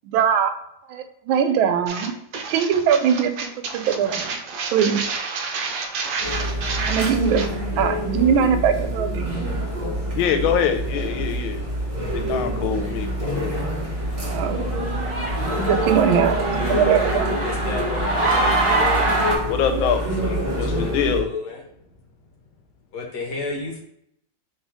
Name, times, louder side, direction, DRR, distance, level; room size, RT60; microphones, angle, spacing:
voice 1, 0.1-0.6 0.9-2.1 2.5-4.3 4.7-5.1 6.9-7.5 7.8-9.6 14.2-14.6 15.7-17.3 18.8-19.1, right 7 dB, 85° right, 8 dB, 1.4 m, -21 dB
sound 1, 1.9-7.5, right 4 dB, 70° right, 1.0 m, -29 dB
sound 2, 6.2-21.2, equal, 35° right, 0.6 m, -26 dB
voice 2, 10.2-11.6 12.1-13.5 19.5-20.0 20.6-21.3, left 8 dB, 85° left, 5 dB, 1.4 m, -24 dB
sound 3, 12.8-13.3 13.6-13.7 14.2-19.4, right 2 dB, 20° right, 1.1 m, -24 dB
voice 3, 16.5-19.4 19.8-19.9 20.2-21.6 22.9-23.8, left 3 dB, 60° left, 1 dB, 1.3 m, -33 dB
4.4 x 3.2 x 3.4 m, 0.76 s
omnidirectional pair, 2.2 m